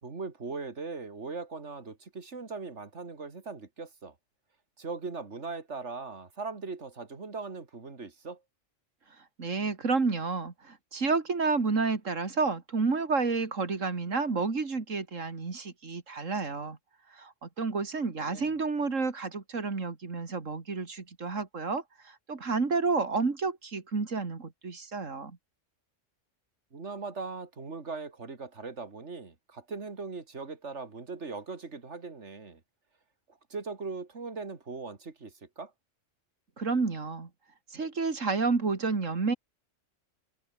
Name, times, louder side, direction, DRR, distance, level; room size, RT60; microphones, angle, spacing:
voice 1, 0.0-4.1 4.8-8.4 18.2-18.5 26.7-32.6 33.5-35.7, right 4 dB, 65° right, 2.9 m, -39 dB
voice 2, 9.4-16.8 17.1-25.4 36.6-37.3 37.7-39.3, right 4 dB, 85° right, 2.9 m, -30 dB
omnidirectional pair, 1.3 m